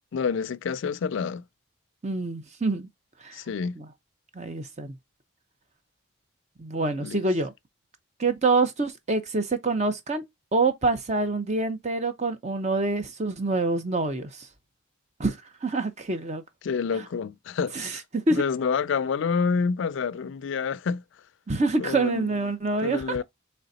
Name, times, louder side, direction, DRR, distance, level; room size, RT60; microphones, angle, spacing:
voice 1, 0.1-1.4 3.3-3.8 7.0-7.2 16.6-18.0 18.3-21.0 21.8-22.3 22.8-23.2, left 5 dB, 60° left, 0.3 m, -28 dB
voice 2, 2.0-2.9 3.2-3.4 3.8-3.9 4.3-4.9 6.6-7.5 8.2-10.2 10.5-14.5 15.2-16.4 17.7-18.4 21.5-23.0, right 3 dB, 35° right, 0.7 m, -26 dB
3.9 x 3.3 x 4.0 m
head